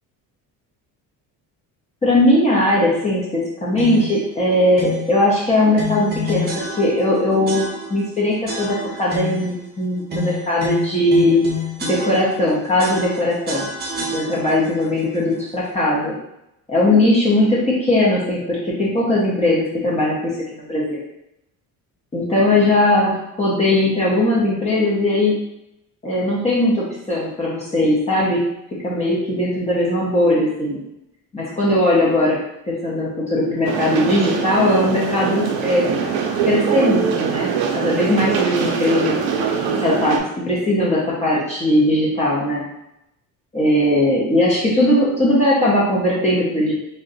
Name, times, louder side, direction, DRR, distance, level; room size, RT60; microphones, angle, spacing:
voice 1, 2.0-11.4 11.8-13.7 14.1-16.2 16.7-21.0 22.1-25.3 26.0-28.4 28.8-30.8 31.3-32.4 32.7-35.8 36.5-39.2 39.8-40.2 40.5-42.6 43.5-46.7, left 1 dB, 20° left, -6 dB, 0.6 m, -19 dB
sound 1, 3.8-4.2 4.8-5.1 5.8-7.1 7.5-8.1 8.5-9.5 10.1-12.5 12.8-14.7, left 3 dB, 25° right, 0.5 m, -28 dB
sound 2, 33.6-40.2, right 6 dB, 75° right, 0.6 m, -22 dB
2.6 x 2.2 x 3.8 m, 0.83 s
cardioid pair, 165°, 37 cm